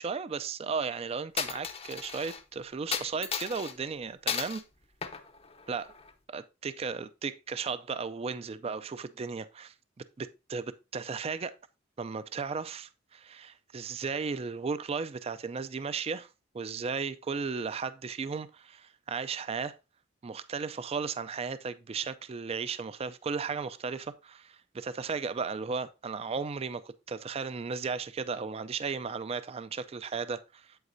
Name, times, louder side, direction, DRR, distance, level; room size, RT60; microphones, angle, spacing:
voice 1, 0.0-4.6 5.7-5.9 6.3-9.7 10.2-11.5 12.0-16.3 16.5-19.8 20.2-26.8 27.1-30.8, right 5 dB, 30° right, 0.4 m, -35 dB
Coin (dropping), 1.4-2.4 2.9-3.7 4.3-4.6 5.0-6.1, left 7 dB, 30° left, 0.6 m, -35 dB
8.2 x 7.9 x 2.6 m
head